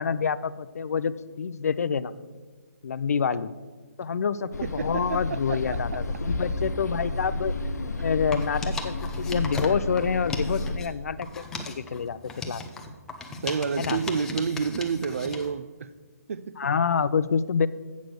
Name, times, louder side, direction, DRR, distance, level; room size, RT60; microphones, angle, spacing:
voice 1, 0.0-2.1 2.8-3.5 4.0-7.5 7.8-12.6 13.8-14.0 16.6-17.7, left 6 dB, 65° left, 0.4 m, -27 dB
sound 1, 4.5-10.8, left 2 dB, 80° left, 0.8 m, -31 dB
voice 2, 4.6-5.8 13.3-15.9 16.3-16.7, right 5 dB, 55° right, 0.5 m, -29 dB
sound 2, 8.2-10.9 11.2-15.5, left 3 dB, 5° left, 0.5 m, -37 dB
8.4 x 6.0 x 6.4 m
hypercardioid pair, 165°, 9 cm